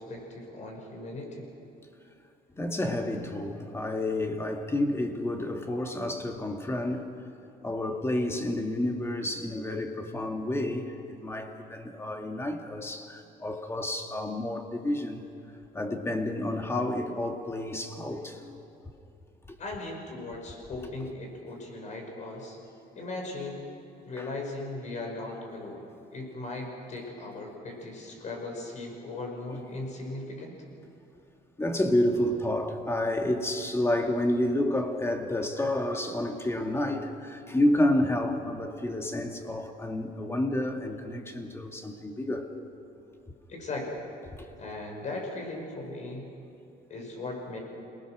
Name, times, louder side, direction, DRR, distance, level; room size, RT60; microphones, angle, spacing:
voice 1, 0.0-1.5 19.6-22.6 23.0-23.6 24.0-25.8 26.1-30.6 43.5-44.0 44.6-46.3 46.9-47.6, left 2 dB, 45° left, 1 dB, 5.8 m, -38 dB
voice 2, 2.5-7.1 7.6-15.2 15.7-18.6 24.2-24.3 31.6-42.5 44.4-44.5, left 1 dB, 15° left, 4 dB, 2.0 m, -30 dB
28.5 x 19.0 x 6.2 m, 2.7 s
cardioid pair, 110°, 17 cm